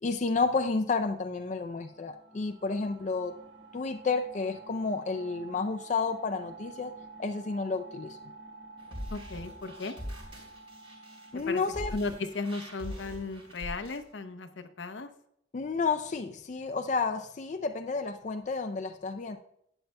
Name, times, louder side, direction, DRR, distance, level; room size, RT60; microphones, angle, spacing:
voice 1, 0.0-3.4 3.7-6.9 7.2-8.2 11.3-11.9 15.5-19.4, left 4 dB, 40° left, 7 dB, 0.4 m, -31 dB
sound 1, 1.0-14.5, right 3 dB, 75° right, 1.3 m, -50 dB
sound 2, 8.8-14.0, equal, 30° right, 3.5 m, -42 dB
voice 2, 9.1-9.9 11.5-11.6 11.9-15.1, left 3 dB, 80° left, 8 dB, 0.7 m, -35 dB
11.5 x 8.9 x 2.2 m, 0.72 s
head